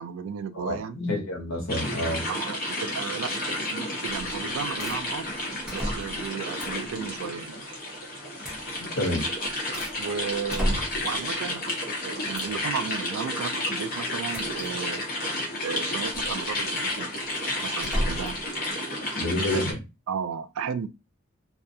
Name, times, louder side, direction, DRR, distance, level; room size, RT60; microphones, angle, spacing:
voice 1, 0.0-1.0 2.3-5.3 5.7-7.6 10.0-11.7 12.0-15.0 15.6-17.1 17.6-18.4 19.5-19.7 20.1-20.9, right 7 dB, 80° right, 0.3 m, -34 dB
voice 2, 0.5-2.3 8.8-9.3 19.1-19.8, left 1 dB, 70° left, 1.0 m, -29 dB
sound 1, 1.7-19.7, left 1 dB, 45° left, 0.9 m, -31 dB
sound 2, 4.1-4.4 4.8-5.0 5.6-6.3 6.6-6.9 8.4-8.6 9.2-10.0 10.5-11.2 12.3-12.6 14.3-14.7 16.0-16.3 17.8-18.4, equal, 5° right, 0.7 m, -32 dB
2.4 x 2.3 x 2.6 m
head